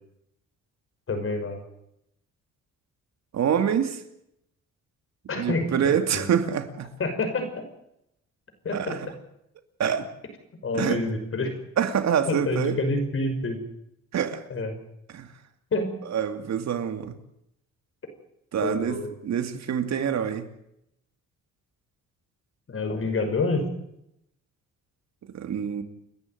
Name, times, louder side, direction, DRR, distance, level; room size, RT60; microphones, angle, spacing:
voice 1, 1.1-1.6 5.3-6.3 7.0-7.6 8.6-9.1 10.6-11.5 12.3-13.6 14.5-14.7 15.7-15.9 18.6-19.1 22.7-23.7, left 2 dB, 45° left, 6.0 m, -28 dB
voice 2, 3.3-4.0 5.3-6.9 8.7-9.1 9.8-10.1 10.7-11.0 11.8-12.8 14.1-14.4 15.1-15.3 16.1-17.1 18.5-20.5 25.3-25.8, right 8 dB, 60° right, 2.6 m, -26 dB
29.5 x 11.0 x 9.2 m
cardioid pair, 90°, 30 cm